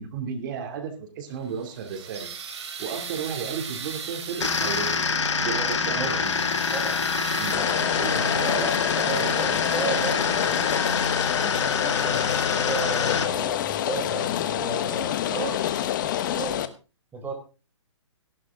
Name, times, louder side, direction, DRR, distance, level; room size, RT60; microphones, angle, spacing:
voice 1, 0.0-2.3 2.8-4.9 5.4-6.4 7.4-7.6 8.0-8.8 9.1-9.3 10.0-10.1 11.4-11.6 15.3-15.6, right 6 dB, 40° right, 7 dB, 2.8 m, -34 dB
sound 1, 1.3-5.3 5.8-7.6, right 6 dB, 60° right, 3.0 m, -38 dB
sound 2, 4.4-13.2, left 5 dB, 65° left, 2.4 m, -26 dB
voice 2, 6.7-7.0 7.5-8.8 9.1-10.8 11.5-15.5 16.0-16.6 17.1-17.3, right 3 dB, 10° right, 3 dB, 3.9 m, -34 dB
Rain, 7.5-16.7, left 11 dB, 40° left, 1.2 m, -27 dB
15.5 x 12.0 x 3.7 m, 0.33 s
hypercardioid pair, 140°, 16 cm